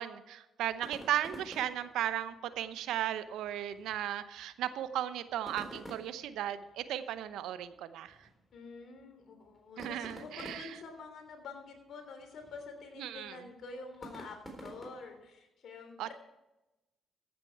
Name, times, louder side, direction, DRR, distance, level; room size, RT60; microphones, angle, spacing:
voice 1, 0.0-8.2 9.8-10.7 13.0-13.4 16.0-16.1, right 11 dB, 80° right, 12 dB, 0.7 m, -36 dB
sound 1, 0.7-15.3, right 1 dB, 10° left, 3.9 m, -52 dB
voice 2, 8.5-16.1, left 4 dB, 65° left, 5 dB, 3.2 m, -48 dB
14.5 x 8.9 x 4.6 m, 0.99 s
supercardioid pair, 55°, 0 cm